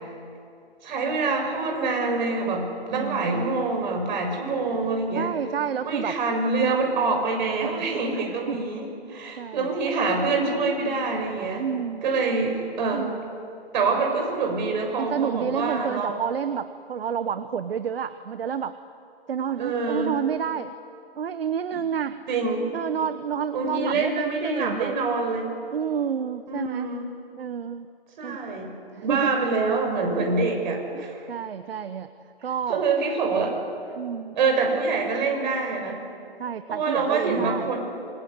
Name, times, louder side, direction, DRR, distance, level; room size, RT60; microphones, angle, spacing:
voice 1, 0.8-5.3 5.8-11.6 12.0-13.1 13.7-16.1 19.6-20.1 22.3-22.7 23.5-25.5 26.5-27.0 28.2-28.7 29.0-31.2 32.7-33.5 34.4-36.0 36.7-37.8, right 4 dB, 45° right, 2 dB, 6.8 m, -25 dB
voice 2, 2.9-3.3 5.1-6.2 7.6-7.8 8.1-8.6 9.4-9.7 11.6-12.0 12.9-13.2 13.9-14.0 15.0-18.8 19.3-20.7 21.2-22.2 22.7-25.0 25.7-26.9 27.4-27.9 28.2-28.4 28.9-29.5 30.9-32.1 32.4-32.8 33.9-34.3 36.4-37.7, right 7 dB, 65° right, 12 dB, 1.1 m, -29 dB
27.0 x 23.0 x 8.3 m, 2.5 s
hypercardioid pair, 140°, 31 cm